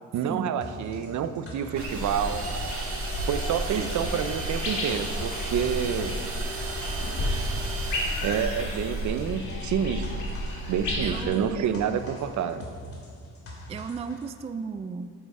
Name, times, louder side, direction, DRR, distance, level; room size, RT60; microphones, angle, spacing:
voice 1, 0.1-2.4 3.3-6.1 8.2-10.2 10.7-12.6, right 8 dB, 65° right, 11 dB, 0.7 m, -28 dB
sound 1, 0.6-14.3, equal, 45° left, 2.6 m, -43 dB
sound 2, 1.8-11.2, equal, 70° left, 2.8 m, -32 dB
sound 3, 1.8-9.4, right 3 dB, 45° right, 2.0 m, -37 dB
voice 2, 11.0-11.6 13.7-15.1, right 5 dB, 20° right, 10 dB, 0.3 m, -35 dB
11.0 x 7.9 x 4.9 m, 2.2 s
cardioid pair, 105°, 31 cm